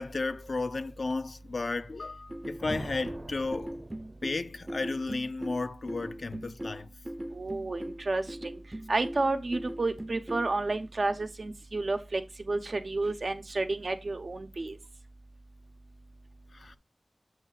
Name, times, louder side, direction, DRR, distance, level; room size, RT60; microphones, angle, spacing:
voice 1, 0.0-3.8 4.2-6.9 16.5-16.8, left 3 dB, 80° left, 0.3 m, -33 dB
sound 1, 2.3-10.5, right 1 dB, 20° right, 0.5 m, -40 dB
sound 2, 2.6-4.9, right 1 dB, 40° right, 0.9 m, -44 dB
voice 2, 7.3-8.5 8.9-12.2 12.5-14.7, right 2 dB, 70° right, 0.7 m, -31 dB
7.1 x 2.5 x 5.5 m
wide cardioid pair, 75°, 0 cm